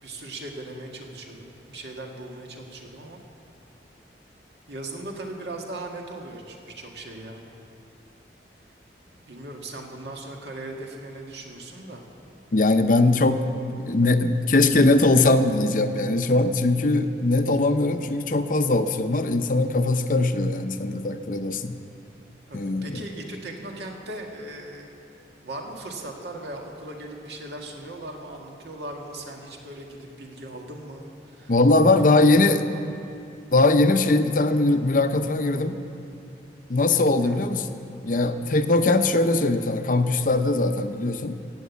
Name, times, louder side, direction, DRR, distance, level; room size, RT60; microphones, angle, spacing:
voice 1, 0.0-3.2 4.7-7.4 9.3-12.0 22.5-24.9 25.4-31.5 32.2-32.3 37.2-37.5, right 2 dB, 70° right, 1 dB, 1.9 m, -38 dB
voice 2, 12.5-13.4 13.7-21.8 22.5-23.0 31.5-32.6 33.5-35.8 36.7-37.7 38.0-41.4, left 2 dB, 45° left, 9 dB, 0.6 m, -21 dB
15.5 x 8.9 x 8.2 m, 2.6 s
head